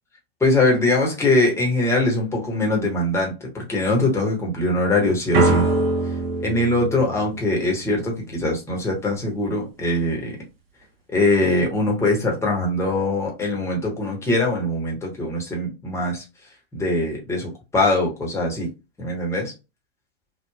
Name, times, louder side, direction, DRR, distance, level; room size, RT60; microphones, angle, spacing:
voice 1, 0.4-5.6 6.4-10.3 11.1-16.2 16.7-18.7 19.0-19.5, left 2 dB, 10° left, 1.1 m, -22 dB
sound 1, 5.3-8.2, right 2 dB, 70° right, 1.0 m, -23 dB
3.3 x 2.2 x 2.3 m
figure-of-eight pair, 105°, 31 cm